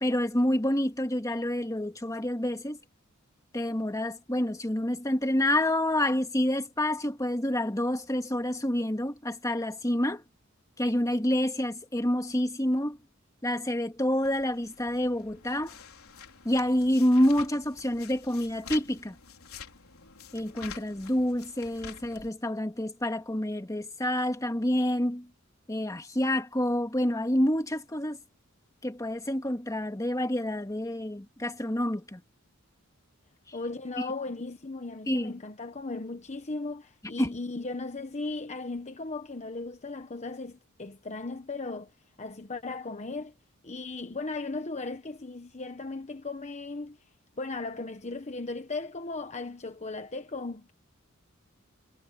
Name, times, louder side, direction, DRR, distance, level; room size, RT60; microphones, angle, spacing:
voice 1, 0.0-2.8 3.5-10.2 10.8-13.0 13.4-15.7 16.4-19.2 20.3-25.3 25.7-28.2 28.8-32.2 34.0-34.1 35.1-35.3 37.2-37.3, left 1 dB, 15° left, 1.9 m, -28 dB
sound 1, 14.2-22.3, left 6 dB, 85° left, 4.3 m, -48 dB
voice 2, 33.5-41.9 42.2-43.3 43.6-47.0 47.4-50.7, left 3 dB, 35° left, 1.2 m, -37 dB
head